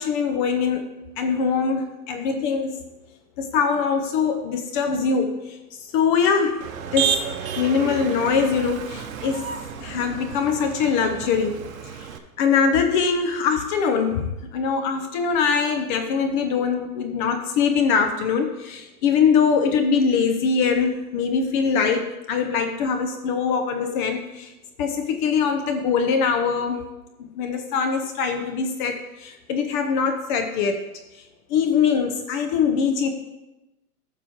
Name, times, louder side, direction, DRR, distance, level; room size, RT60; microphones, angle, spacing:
voice 1, 0.0-2.7 3.4-6.6 6.9-7.2 7.6-9.4 9.8-12.1 12.4-24.5 24.8-26.8 27.2-30.8 31.1-33.1, left 6 dB, 30° left, 6 dB, 0.7 m, -23 dB
Motor vehicle (road), 6.6-12.2, right 8 dB, 60° right, 0.9 m, -31 dB
11.5 x 6.1 x 2.9 m, 0.99 s
hypercardioid pair, 125°, 46 cm